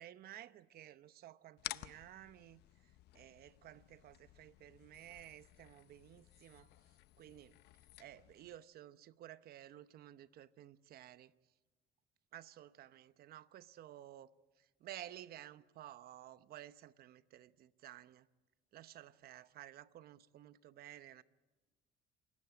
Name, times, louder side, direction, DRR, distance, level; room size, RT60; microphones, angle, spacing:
voice 1, 0.0-2.6 3.1-6.7 7.2-7.5 8.0-11.3 12.3-14.3 14.6-18.3 18.7-21.2, right 12 dB, 65° right, 0.9 m, -54 dB
sound 1, 1.6-8.6, left 16 dB, 80° left, 0.7 m, -53 dB
28.0 x 16.0 x 8.8 m
cardioid pair, 110°, 17 cm